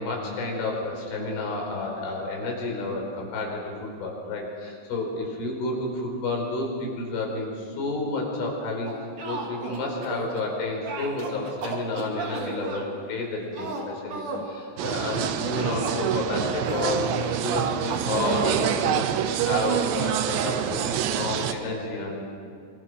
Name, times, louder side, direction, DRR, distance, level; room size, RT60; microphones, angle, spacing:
voice 1, 0.0-8.9 9.2-19.1 19.4-22.2, left 2 dB, 75° left, 0 dB, 7.1 m, -30 dB
sound 1, 8.9-10.5 10.8-12.8 13.5-14.5 15.1-16.0 16.6-17.0 17.9-18.5, right 3 dB, 45° right, 3.9 m, -34 dB
sound 2, 14.8-21.5, right 10 dB, 75° right, 3.0 m, -26 dB
26.0 x 25.5 x 6.3 m, 2.4 s
omnidirectional pair, 5.6 m